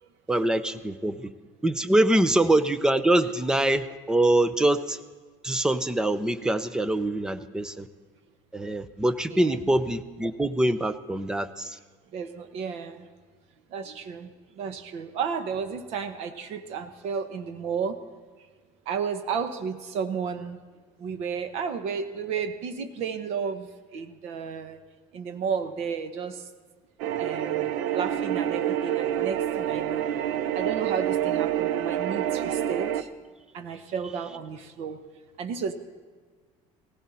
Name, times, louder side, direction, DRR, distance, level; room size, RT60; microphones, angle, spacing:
voice 1, 0.3-1.3 1.6-5.0 5.4-7.9 8.5-11.8, right 1 dB, 5° right, 13 dB, 0.4 m, -24 dB
voice 2, 9.3-9.6 12.1-13.1 13.7-18.0 18.9-20.6 21.0-24.8 25.1-26.5 27.2-30.1 30.5-33.1 33.5-35.0 35.4-35.7, right 6 dB, 55° right, 9 dB, 1.1 m, -33 dB
sound 1, 27.0-33.0, right 11 dB, 75° right, 0.7 m, -27 dB
17.5 x 16.0 x 4.2 m, 1.5 s
cardioid pair, 175°, 13 cm